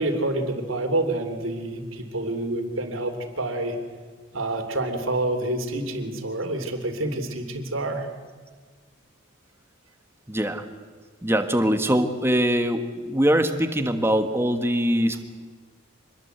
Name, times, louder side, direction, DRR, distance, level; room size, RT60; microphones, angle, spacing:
voice 1, 0.0-3.8 4.3-8.1, right 2 dB, 85° right, 6 dB, 3.0 m, -28 dB
voice 2, 10.3-10.6 11.2-15.3, equal, 10° right, 8 dB, 1.4 m, -22 dB
25.5 x 21.0 x 8.0 m, 1.5 s
head